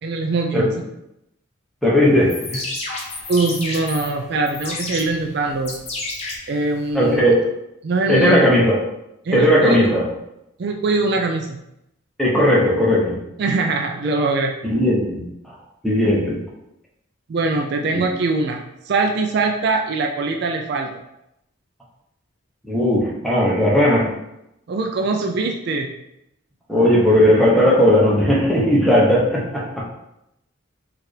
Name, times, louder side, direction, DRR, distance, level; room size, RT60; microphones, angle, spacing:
voice 1, 0.0-0.7 3.3-5.8 6.5-7.2 7.8-8.4 9.3-9.9 10.6-11.6 13.4-14.5 17.3-18.6 18.9-20.9 24.7-25.9, right 3 dB, 55° right, 3 dB, 0.3 m, -22 dB
voice 2, 1.8-2.6 6.9-7.3 8.1-8.8 9.3-10.1 12.2-13.2 14.6-15.5 15.8-16.4 17.9-18.0 22.7-24.1 26.7-29.8, equal, ahead, -5 dB, 0.8 m, -17 dB
sound 1, 2.1-7.1, left 2 dB, 30° left, 0.7 m, -31 dB
4.3 x 2.5 x 3.2 m, 0.85 s
head